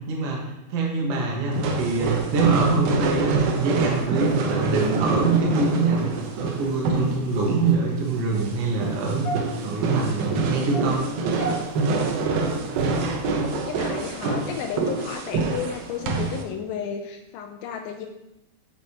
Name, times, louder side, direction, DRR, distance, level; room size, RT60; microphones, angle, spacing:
voice 1, 0.1-6.0 6.4-9.3 9.6-11.1, right 4 dB, 55° right, -2 dB, 1.9 m, -24 dB
sound 1, 1.5-16.4, right 3 dB, 75° right, 2.5 m, -26 dB
sound 2, 3.9-13.5, right 2 dB, 65° left, 2.8 m, -41 dB
voice 2, 13.4-18.1, left 7 dB, 85° left, 3 dB, 2.4 m, -33 dB
8.6 x 6.4 x 2.9 m, 0.90 s
omnidirectional pair, 4.3 m